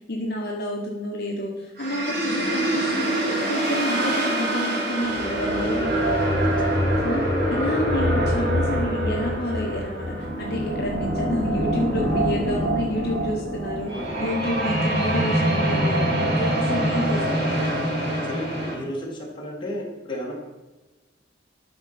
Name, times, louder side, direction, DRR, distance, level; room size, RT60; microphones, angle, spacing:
voice 1, 0.1-6.3 7.0-7.2 7.5-17.5, left 1 dB, 60° left, -1 dB, 1.3 m, -29 dB
sound 1, 1.8-18.7, right 1 dB, 60° right, 2.4 m, -24 dB
voice 2, 13.9-14.3 18.2-20.4, equal, 25° left, -3 dB, 2.4 m, -33 dB
12.0 x 4.5 x 6.0 m, 1.2 s
head